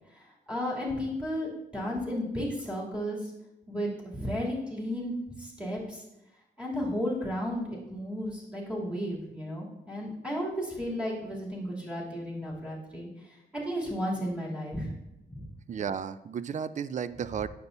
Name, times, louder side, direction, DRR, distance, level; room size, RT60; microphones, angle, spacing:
voice 1, 0.5-3.3 3.7-6.0 6.6-7.6 7.9-13.1 13.5-14.9 15.3-15.5, equal, 5° right, -5 dB, 2.8 m, -33 dB
voice 2, 15.7-17.5, right 7 dB, 45° right, 15 dB, 0.4 m, -33 dB
9.2 x 6.9 x 2.7 m, 0.93 s
cardioid pair, 85°, 18 cm